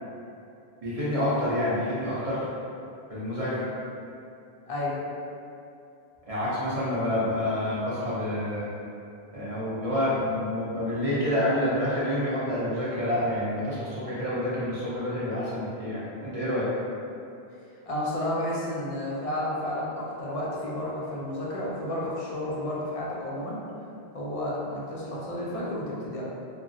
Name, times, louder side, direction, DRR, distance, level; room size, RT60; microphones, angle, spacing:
voice 1, 0.8-2.5 3.1-3.6 6.3-8.7 9.3-16.7, left 1 dB, 40° right, -9 dB, 0.6 m, -28 dB
voice 2, 17.9-23.6 24.1-26.2, left 1 dB, 45° left, -5 dB, 0.5 m, -31 dB
2.8 x 2.3 x 2.6 m, 2.6 s
omnidirectional pair, 1.1 m